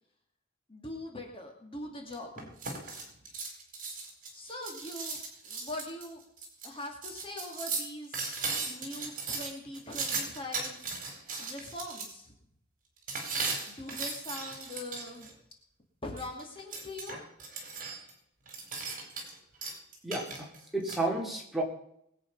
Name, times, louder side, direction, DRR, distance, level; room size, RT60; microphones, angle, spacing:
voice 1, 0.7-3.0 4.3-6.2 6.6-8.2 8.7-11.0 11.4-12.3 13.7-15.4 16.0-17.2, left 1 dB, 25° left, 1 dB, 2.5 m, -42 dB
sound 1, 2.1-12.1 13.1-15.3 16.2-18.1 18.5-19.4 19.6-21.0, right 4 dB, 45° right, 4.2 m, -37 dB
voice 2, 20.0-21.6, right 2 dB, ahead, -1 dB, 2.8 m, -32 dB
21.0 x 8.6 x 5.5 m, 0.74 s
head